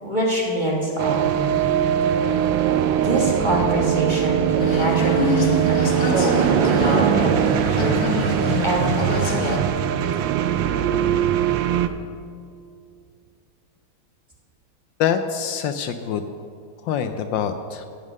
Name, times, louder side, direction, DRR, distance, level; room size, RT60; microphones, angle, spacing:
voice 1, 0.0-1.5 3.0-8.0 8.6-9.6, right 1 dB, 25° right, -2 dB, 1.3 m, -25 dB
sound 1, 1.0-11.9, right 10 dB, 75° right, 1.2 m, -21 dB
sound 2, 4.6-9.6, left 5 dB, 55° left, 1.4 m, -27 dB
voice 2, 15.0-16.2 16.8-17.9, left 8 dB, 75° left, 9 dB, 1.2 m, -25 dB
15.5 x 5.5 x 6.4 m, 2.3 s
omnidirectional pair, 2.2 m